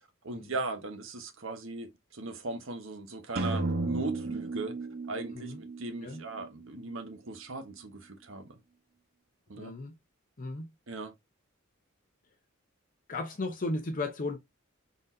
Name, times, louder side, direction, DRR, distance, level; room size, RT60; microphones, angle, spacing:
voice 1, 0.2-4.7 5.1-8.6 9.5-9.7 10.9-11.1, right 2 dB, 70° right, 1.1 m, -38 dB
sound 1, 3.4-7.2, right 2 dB, 50° right, 0.8 m, -35 dB
voice 2, 9.6-10.0 10.4-10.7 13.1-14.4, left 2 dB, 40° left, 0.7 m, -35 dB
4.0 x 3.9 x 2.6 m
head